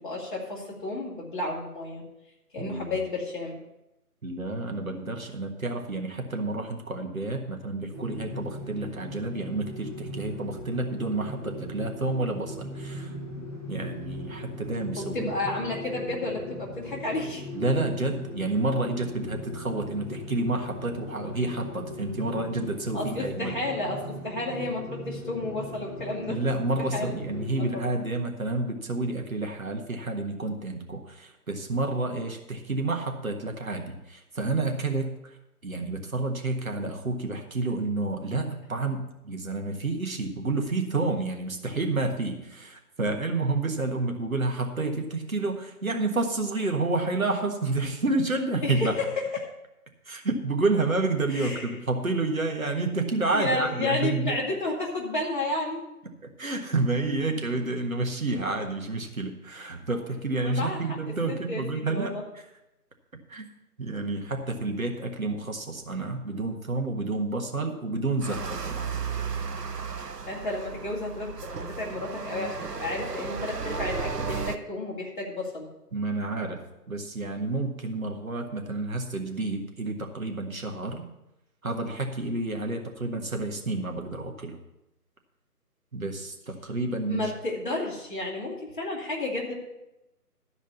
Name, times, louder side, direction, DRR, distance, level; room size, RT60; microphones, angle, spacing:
voice 1, 0.0-2.0 2.5-3.6 15.0-17.4 22.9-26.4 26.9-27.1 27.6-28.0 48.6-49.2 51.3-51.7 53.3-55.8 60.4-60.8 61.5-62.2 70.3-75.7 87.1-89.6, left 2 dB, 30° left, -5 dB, 2.5 m, -32 dB
voice 2, 2.6-2.9 4.2-13.2 13.7-15.3 17.5-23.5 26.3-35.4 35.6-49.0 50.0-54.4 56.4-62.1 63.3-63.5 63.8-68.9 75.9-81.1 81.6-84.6 85.9-87.3, right 2 dB, 60° right, 3 dB, 1.6 m, -29 dB
sound 1, 7.9-27.7, left 1 dB, 15° right, 1.1 m, -39 dB
sound 2, 68.2-74.6, right 5 dB, 80° right, 0.9 m, -34 dB
12.5 x 5.1 x 8.1 m, 0.91 s
figure-of-eight pair, 155°, 47 cm